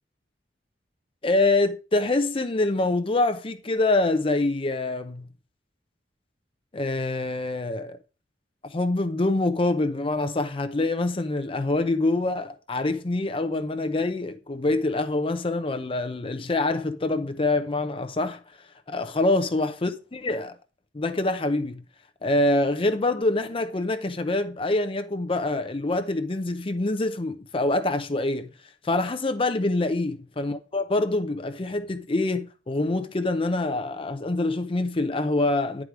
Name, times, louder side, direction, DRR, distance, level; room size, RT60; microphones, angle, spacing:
voice 1, 1.2-5.3 6.7-8.0 8.7-18.4 18.9-20.6 20.9-21.8 22.2-28.5 28.8-35.8, left 2 dB, 30° left, 0.6 m, -25 dB
9.6 x 4.9 x 4.9 m
head